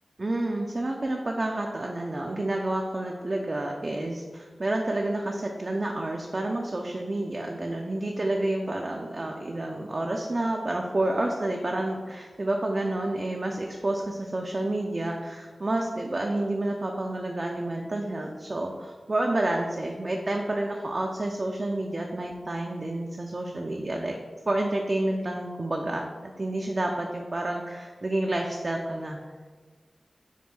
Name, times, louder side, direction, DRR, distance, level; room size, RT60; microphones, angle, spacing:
voice 1, 0.2-24.2 24.5-29.2, right 1 dB, 50° right, 1 dB, 0.3 m, -29 dB
5.1 x 2.1 x 3.1 m, 1.4 s
cardioid pair, 50°, 0 cm